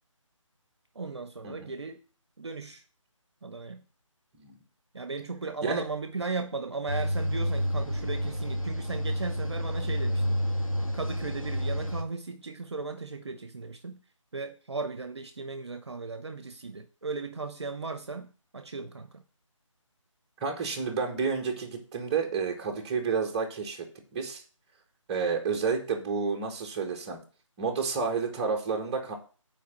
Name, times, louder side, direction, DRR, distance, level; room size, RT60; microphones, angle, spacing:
voice 1, 0.9-2.0 2.4-2.8 3.4-3.8 4.9-10.4 10.9-14.0 14.3-19.2, right 4 dB, 55° right, 1.0 m, -36 dB
sound 1, 6.9-12.0, equal, 85° left, 2.0 m, -29 dB
voice 2, 20.4-23.9 24.1-24.4 25.1-27.2 27.6-29.1, right 5 dB, 15° right, 1.5 m, -30 dB
8.3 x 5.0 x 7.5 m
figure-of-eight pair, 155°, 17 cm